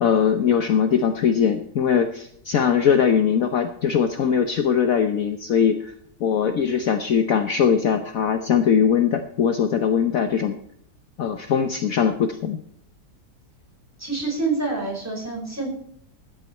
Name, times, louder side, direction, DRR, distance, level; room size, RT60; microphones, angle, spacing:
voice 1, 0.0-5.9 6.2-10.6 11.2-12.6, left 7 dB, 60° left, 7 dB, 1.2 m, -21 dB
voice 2, 14.0-15.7, right 3 dB, 10° right, -2 dB, 4.6 m, -27 dB
13.5 x 9.3 x 4.3 m, 0.68 s
omnidirectional pair, 1.8 m